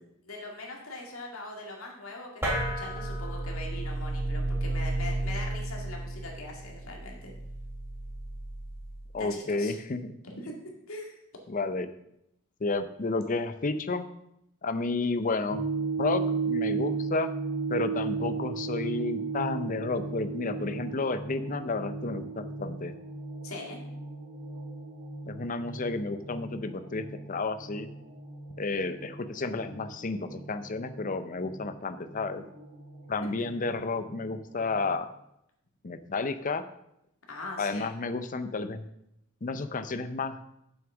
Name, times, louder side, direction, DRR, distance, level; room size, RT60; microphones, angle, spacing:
voice 1, 0.2-7.3 9.2-9.7 10.2-10.5 10.9-11.2 23.4-23.8 25.2-25.3 37.3-37.9, left 2 dB, 75° left, 0 dB, 2.1 m, -41 dB
sound 1, 2.4-9.2, right 1 dB, 10° right, 2.6 m, -33 dB
voice 2, 9.1-10.1 11.5-11.9 12.6-14.1 14.6-15.6 16.0-17.3 17.7-22.9 25.3-27.9 28.6-32.4 33.1-35.1 35.8-36.6 37.6-38.8 39.4-40.4, left 3 dB, 40° left, 11 dB, 0.6 m, -31 dB
sound 2, 15.5-34.9, right 4 dB, 80° right, 2.3 m, -36 dB
7.2 x 6.2 x 6.0 m, 0.80 s
head